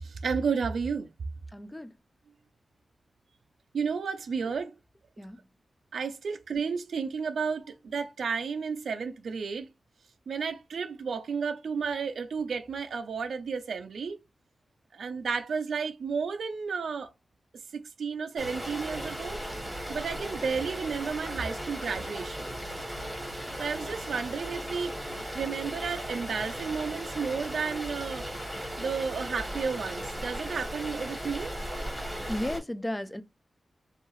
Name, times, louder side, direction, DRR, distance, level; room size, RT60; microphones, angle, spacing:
voice 1, 0.0-1.1 3.7-4.7 5.9-9.7 10.3-14.2 14.9-17.1 17.7-19.4 19.9-22.5 23.5-25.0 25.3-28.3 28.8-31.5, right 5 dB, 90° right, 0.4 m, -32 dB
voice 2, 1.5-1.9 5.2-5.4 32.3-33.2, left 1 dB, 15° left, 0.3 m, -34 dB
sound 1, 18.4-32.6, equal, 5° right, 1.4 m, -37 dB
2.6 x 2.4 x 3.0 m
wide cardioid pair, 85°, 0 cm